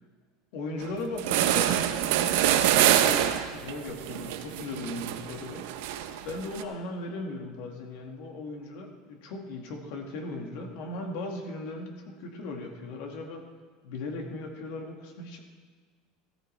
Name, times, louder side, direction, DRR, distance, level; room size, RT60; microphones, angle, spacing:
voice 1, 0.5-5.7 6.2-13.5 13.8-15.4, left 2 dB, 65° left, 3 dB, 1.7 m, -38 dB
sound 1, 0.8-0.9 1.2-6.6, right 11 dB, 75° right, 0.7 m, -26 dB
13.5 x 13.5 x 3.3 m, 1.5 s
supercardioid pair, 150°, 0 cm